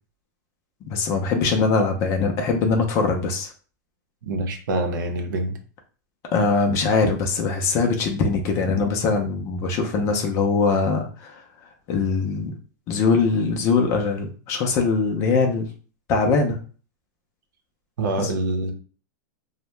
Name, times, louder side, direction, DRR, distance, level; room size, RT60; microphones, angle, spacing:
voice 1, 0.9-3.5 6.3-11.4 11.9-12.5 12.9-15.7 16.1-16.6 18.2-18.3, left 4 dB, 30° left, 3 dB, 0.5 m, -22 dB
voice 2, 4.2-5.6 18.0-18.7, right 2 dB, 75° right, 5 dB, 0.7 m, -25 dB
2.7 x 2.1 x 3.2 m, 0.39 s
supercardioid pair, 165°, 10 cm